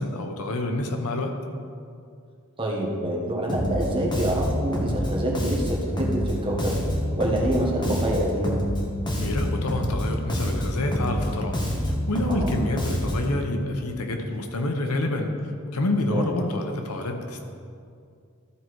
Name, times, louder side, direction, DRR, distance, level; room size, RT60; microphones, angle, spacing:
voice 1, 0.0-1.3 9.2-11.5 11.8-15.3 15.7-17.4, left 2 dB, 85° left, 4 dB, 0.9 m, -27 dB
voice 2, 2.6-6.8 7.2-8.6 12.3-12.5 16.1-16.3, right 1 dB, 25° right, -2 dB, 1.3 m, -26 dB
Bass guitar, 3.5-13.4, equal, 20° left, 1.2 m, -27 dB
13.0 x 4.5 x 4.6 m, 2.4 s
head